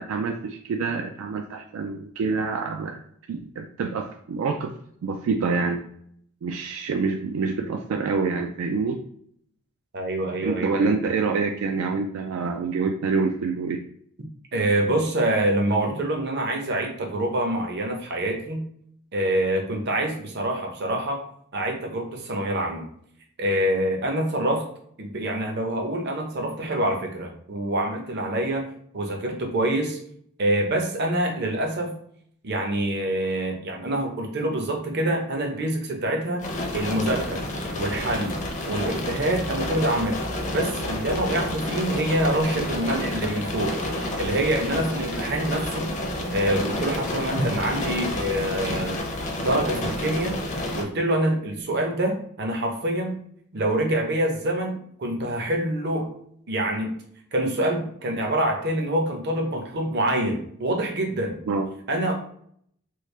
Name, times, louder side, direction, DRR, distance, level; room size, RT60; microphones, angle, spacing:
voice 1, 0.0-3.0 3.3-4.7 5.0-5.8 6.4-9.0 10.4-13.8 61.5-61.7, right 4 dB, 75° right, 4 dB, 0.3 m, -26 dB
voice 2, 9.9-10.9 14.5-18.6 19.1-22.9 23.4-24.7 25.0-28.7 28.9-30.0 30.4-31.9 32.4-36.5 36.7-37.4 37.7-38.4 38.7-43.8 44.2-45.9 46.3-49.0 49.4-50.4 50.7-53.1 53.5-56.1 56.5-57.0 57.3-61.4 61.9-62.1, right 1 dB, 50° right, 2 dB, 0.7 m, -26 dB
sound 1, 36.4-50.8, left 1 dB, 35° left, 0.6 m, -29 dB
3.1 x 2.4 x 3.2 m, 0.66 s
head